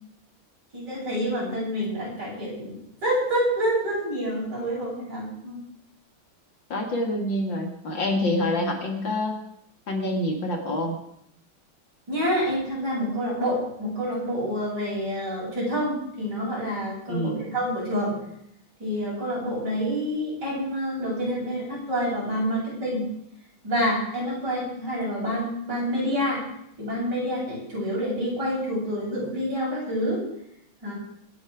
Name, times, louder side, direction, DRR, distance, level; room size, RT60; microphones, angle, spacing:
voice 1, 0.7-2.8 3.0-5.6 12.1-18.2 18.8-23.1 23.6-26.4 26.8-30.2 30.8-30.9, equal, 55° right, -5 dB, 8.8 m, -27 dB
voice 2, 6.7-9.4 9.9-11.0 17.1-17.4, left 1 dB, 60° left, 2 dB, 3.0 m, -26 dB
26.0 x 9.3 x 5.0 m, 0.74 s
omnidirectional pair, 2.3 m